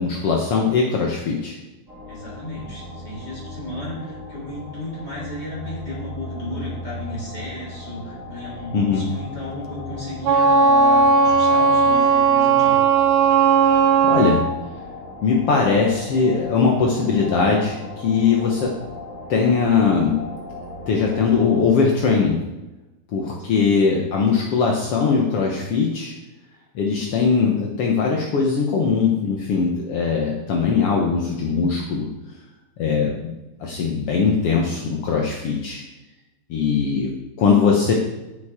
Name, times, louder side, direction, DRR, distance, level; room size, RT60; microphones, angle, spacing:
voice 1, 0.0-1.6 8.7-9.0 14.0-14.4 15.2-18.7 19.3-20.2 20.9-22.4 23.1-26.1 26.7-32.1 32.8-33.3 33.6-35.8 36.5-37.1 37.4-37.9, left 5 dB, 65° left, -1 dB, 1.5 m, -20 dB
sound 1, 1.9-21.6, left 1 dB, 25° right, 2.4 m, -37 dB
voice 2, 2.1-12.8 23.4-23.7 36.8-37.0, left 1 dB, 20° left, -4 dB, 3.8 m, -34 dB
Wind instrument woodwind instrument, 10.2-14.5, right 5 dB, 65° right, 2.1 m, -16 dB
11.0 x 9.6 x 3.7 m, 1.0 s
omnidirectional pair, 4.1 m